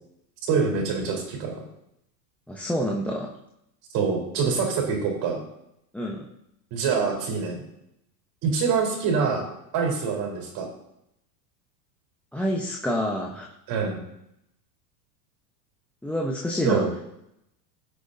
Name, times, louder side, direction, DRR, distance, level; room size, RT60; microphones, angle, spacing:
voice 1, 0.5-1.6 3.9-5.4 6.7-7.6 8.4-9.5 9.7-10.7 13.7-14.0 16.6-16.9, right 5 dB, 45° right, 0 dB, 4.2 m, -25 dB
voice 2, 2.5-3.3 5.9-6.2 12.3-13.5 16.0-16.8, equal, 5° left, -1 dB, 1.0 m, -27 dB
17.5 x 6.5 x 2.7 m, 0.79 s
supercardioid pair, 120°, 49 cm